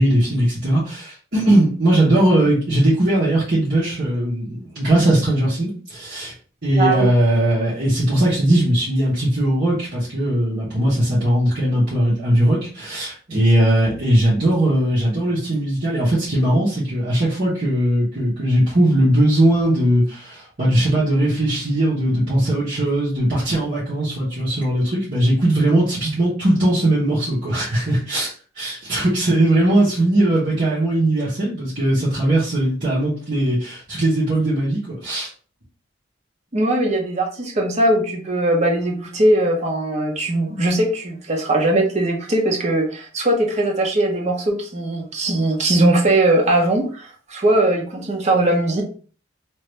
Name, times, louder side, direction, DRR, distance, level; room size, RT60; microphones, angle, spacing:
voice 1, 0.0-6.3 6.6-28.3 28.6-35.3, right 1 dB, 50° right, -11 dB, 1.3 m, -19 dB
voice 2, 6.8-7.1 36.5-48.8, right 1 dB, 35° right, 0 dB, 0.7 m, -20 dB
3.0 x 2.6 x 3.2 m, 0.41 s
head